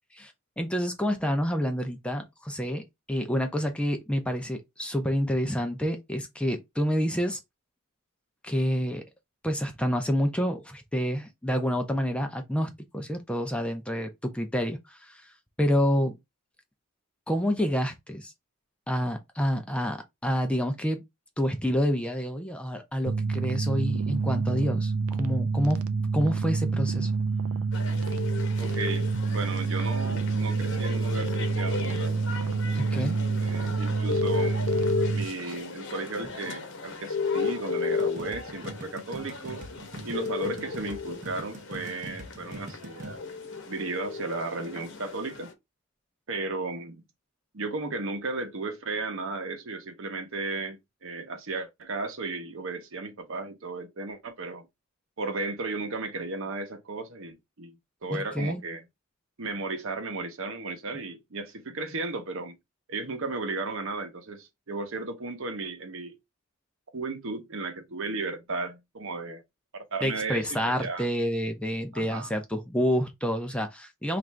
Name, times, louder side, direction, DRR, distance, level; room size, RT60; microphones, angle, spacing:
voice 1, 0.6-7.4 8.4-9.0 9.4-15.3 15.6-16.2 17.3-18.3 18.9-21.0 21.4-25.8 26.1-27.1 32.7-33.2 58.1-58.6 70.0-74.2, equal, 5° left, 0.5 m, -28 dB
sound 1, 23.1-35.2, right 4 dB, 80° right, 0.5 m, -28 dB
sound 2, 27.7-45.5, left 4 dB, 60° left, 0.9 m, -34 dB
voice 2, 28.6-32.9 33.4-34.7 35.1-39.6 40.0-43.3 43.7-45.5 46.3-47.0 47.5-54.7 55.2-57.8 58.0-58.8 59.4-62.6 62.9-66.1 66.9-69.4 69.7-71.0 71.9-72.3, right 3 dB, 65° right, 0.8 m, -35 dB
sound 3, 38.0-43.2, right 1 dB, 35° right, 0.8 m, -43 dB
3.2 x 2.5 x 4.4 m
head